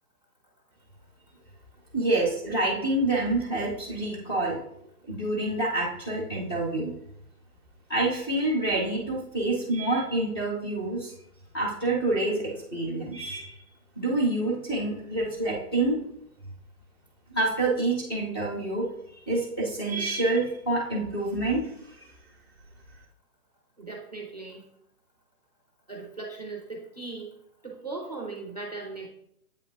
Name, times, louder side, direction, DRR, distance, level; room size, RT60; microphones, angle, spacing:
voice 1, 1.9-4.6 5.1-6.9 7.9-11.1 11.5-13.6 14.0-16.0 17.3-18.9 19.3-21.6 21.9-22.1, right 2 dB, 15° left, -2 dB, 0.7 m, -27 dB
voice 2, 23.8-24.6 25.9-27.3 27.6-29.1, right 3 dB, 30° right, 0 dB, 0.5 m, -38 dB
8.0 x 5.3 x 2.2 m, 0.74 s
hypercardioid pair, 170°, 46 cm